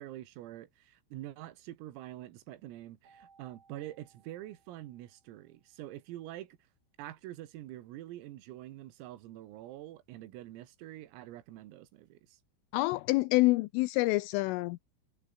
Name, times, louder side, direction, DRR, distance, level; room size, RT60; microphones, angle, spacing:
voice 1, 0.0-6.6 7.0-12.4, right 14 dB, 90° right, 4.4 m, -46 dB
Keyboard (musical), 3.0-5.7, right 5 dB, 75° right, 11.0 m, -65 dB
voice 2, 12.7-14.8, left 21 dB, 85° left, 3.1 m, -27 dB
omnidirectional pair, 5.9 m